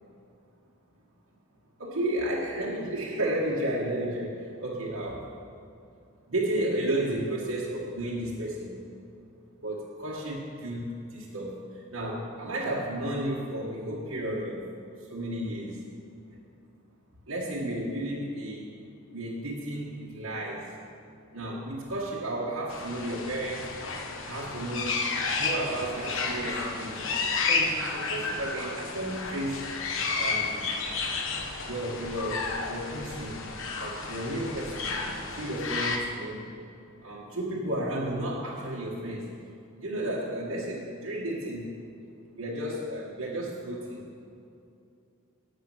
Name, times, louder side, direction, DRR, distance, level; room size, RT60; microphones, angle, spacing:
voice 1, 1.8-5.3 6.3-8.8 9.6-14.7 15.0-15.9 17.3-18.7 19.1-20.7 21.3-23.7 24.2-25.1 25.4-27.0 27.4-29.6 30.1-30.7 31.6-33.4 33.8-34.9 35.3-36.5 37.0-39.3 39.8-41.8 42.4-44.1, right 1 dB, 70° right, -5 dB, 1.4 m, -33 dB
sound 1, 22.7-36.0, left 4 dB, 65° left, 1.1 m, -32 dB
11.5 x 7.6 x 6.1 m, 2.5 s
head